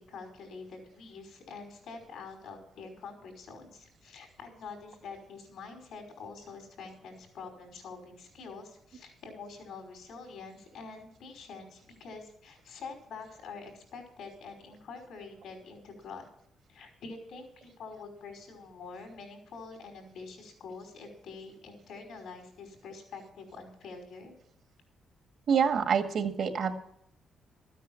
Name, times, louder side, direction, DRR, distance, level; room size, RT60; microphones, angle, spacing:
voice 1, 0.0-16.3 16.7-24.3, left 4 dB, 75° left, 3 dB, 5.2 m, -46 dB
voice 2, 25.5-26.8, right 6 dB, 65° right, 6 dB, 1.9 m, -26 dB
14.0 x 9.3 x 7.1 m, 0.69 s
cardioid pair, 90°, 0 cm